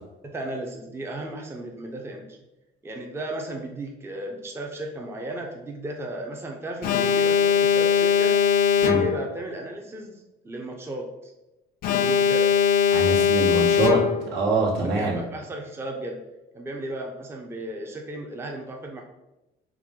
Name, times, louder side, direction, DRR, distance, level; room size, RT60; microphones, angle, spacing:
voice 1, 0.2-2.4 2.8-8.4 8.8-11.3 12.0-12.5 14.8-16.2 16.5-19.0, right 1 dB, 15° right, 1 dB, 0.5 m, -35 dB
Alarm, 6.8-9.4 11.8-14.4, left 7 dB, 60° left, 0.4 m, -20 dB
voice 2, 12.9-15.2, right 3 dB, 80° right, -3 dB, 1.2 m, -24 dB
4.6 x 2.1 x 3.6 m, 0.96 s
cardioid pair, 110°, 17 cm